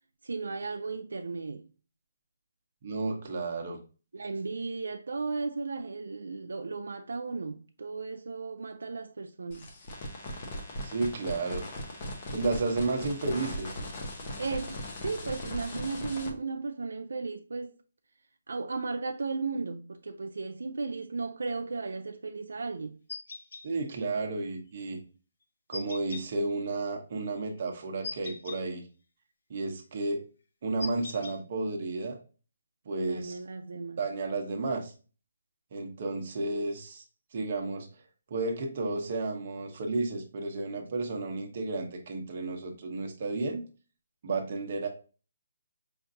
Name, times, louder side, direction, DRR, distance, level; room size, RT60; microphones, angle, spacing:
voice 1, 0.2-1.7 4.1-9.7 14.4-17.8 18.5-23.0 33.0-34.0, right 4 dB, 85° right, 0.3 m, -35 dB
voice 2, 2.8-3.8 10.8-11.6 12.3-13.8 23.6-25.0 25.7-28.8 29.5-30.3 30.6-32.2 32.9-33.4 34.0-34.9 35.7-37.0 37.3-37.9 38.3-43.6 44.2-44.9, right 3 dB, 40° right, 0.8 m, -32 dB
sound 1, 9.5-16.3, left 1 dB, 30° left, 0.7 m, -39 dB
sound 2, 23.1-23.6 25.7-26.2 28.0-28.6 30.8-31.4, left 3 dB, 65° left, 0.7 m, -39 dB
5.0 x 2.5 x 2.6 m
hypercardioid pair, 170°, 0 cm